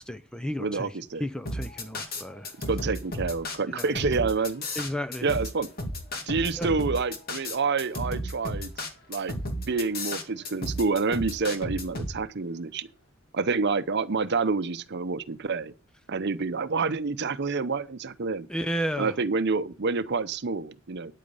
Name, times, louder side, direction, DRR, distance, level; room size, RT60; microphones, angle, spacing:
voice 1, 0.0-0.9 1.2-2.5 3.7-4.1 4.8-5.3 6.6-6.7 18.5-19.1, equal, 5° left, 0.5 m, -33 dB
voice 2, 0.6-1.3 2.7-4.7 5.2-5.7 6.3-9.4 9.7-12.9 13.3-15.7 16.1-18.5 19.0-21.1, right 4 dB, 55° right, 0.7 m, -28 dB
sound 1, 1.5-12.1, left 1 dB, 45° left, 2.2 m, -33 dB
10.0 x 8.3 x 5.4 m
head